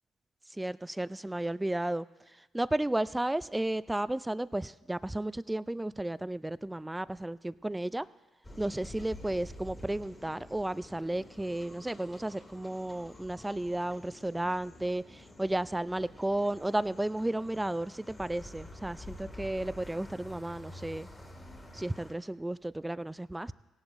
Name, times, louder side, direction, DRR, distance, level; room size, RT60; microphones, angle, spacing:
voice 1, 0.5-8.1 8.6-21.1 21.7-23.5, right 1 dB, 15° right, 18 dB, 0.4 m, -33 dB
sound 1, 8.4-22.1, left 1 dB, 20° left, 2.2 m, -49 dB
18.0 x 11.0 x 2.6 m, 1.2 s
hypercardioid pair, 45°, 0 cm